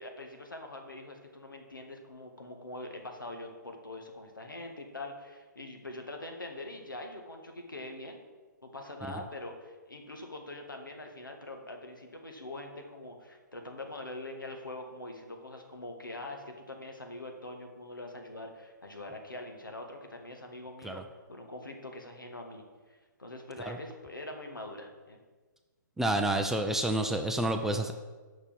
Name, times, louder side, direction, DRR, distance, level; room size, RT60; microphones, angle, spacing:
voice 1, 0.0-8.2 8.6-21.0 21.3-25.2, left 2 dB, 85° left, 3 dB, 1.7 m, -43 dB
voice 2, 26.0-27.9, right 1 dB, 5° right, 5 dB, 0.4 m, -29 dB
6.6 x 5.7 x 7.3 m, 1.3 s
figure-of-eight pair, 130°, 11 cm